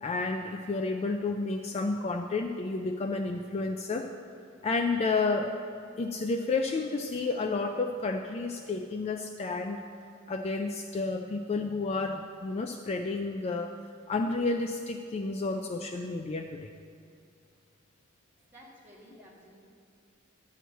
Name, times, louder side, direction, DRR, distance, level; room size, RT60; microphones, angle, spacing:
voice 1, 0.0-4.1 4.6-5.6 6.0-9.8 10.3-13.8 14.1-16.7, left 3 dB, 30° left, 5 dB, 0.3 m, -31 dB
voice 2, 18.4-19.6, equal, 10° right, -5 dB, 1.9 m, -54 dB
11.5 x 4.6 x 8.0 m, 2.4 s
head